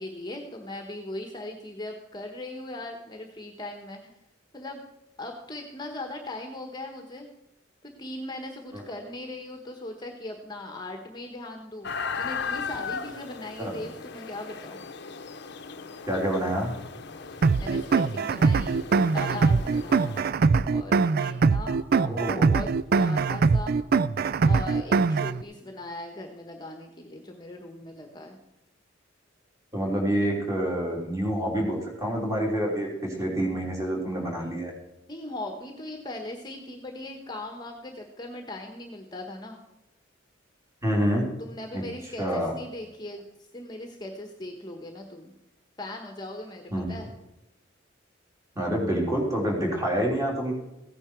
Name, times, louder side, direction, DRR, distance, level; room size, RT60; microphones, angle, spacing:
voice 1, 0.0-4.1 4.5-4.8 5.2-7.3 7.8-14.8 17.2-20.3 20.6-23.8 24.4-28.4 35.1-39.6 41.4-43.2 43.5-45.3 45.8-46.6 46.9-47.1, left 1 dB, 20° left, 4 dB, 1.2 m, -39 dB
sound 1, 11.8-20.2, left 5 dB, 60° left, 0.8 m, -37 dB
voice 2, 16.1-16.7 21.9-22.5 29.7-34.7 40.8-41.3 41.7-41.8 42.2-42.5 46.7-47.0 48.5-50.5, equal, 15° right, -1 dB, 3.4 m, -27 dB
sound 2, 17.4-25.4, right 4 dB, 50° right, 0.4 m, -22 dB
15.5 x 10.0 x 4.5 m, 0.92 s
head